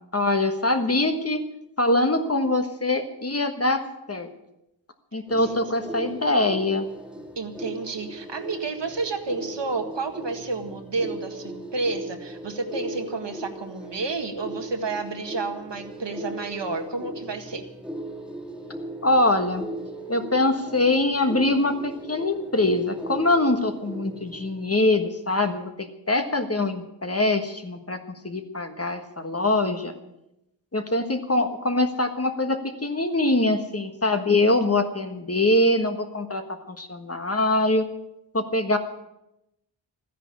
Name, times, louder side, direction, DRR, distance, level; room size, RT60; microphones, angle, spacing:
voice 1, 0.1-1.4 1.8-3.8 4.1-4.3 5.1-6.9 19.0-19.7 20.1-29.9 30.7-37.8 38.3-38.8, left 2 dB, 30° left, 6 dB, 1.4 m, -23 dB
voice 2, 5.1-5.5 7.4-17.6, right 3 dB, 65° right, 5 dB, 1.9 m, -31 dB
sound 1, 5.3-24.7, right 1 dB, ahead, 2.3 m, -38 dB
14.0 x 10.0 x 8.5 m, 0.87 s
wide cardioid pair, 80°, 45 cm